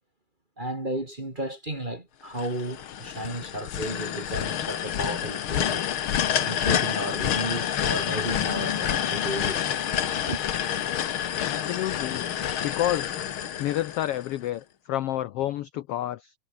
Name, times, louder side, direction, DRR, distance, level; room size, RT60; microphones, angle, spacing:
voice 1, 0.6-5.8 6.4-9.7 10.1-10.4, right 1 dB, 20° right, 1.9 m, -33 dB
sound 1, 2.3-14.4, left 10 dB, 55° left, 1.7 m, -28 dB
voice 2, 11.4-12.2 12.6-13.2 13.6-16.3, left 13 dB, 75° left, 1.3 m, -29 dB
omnidirectional pair, 3.5 m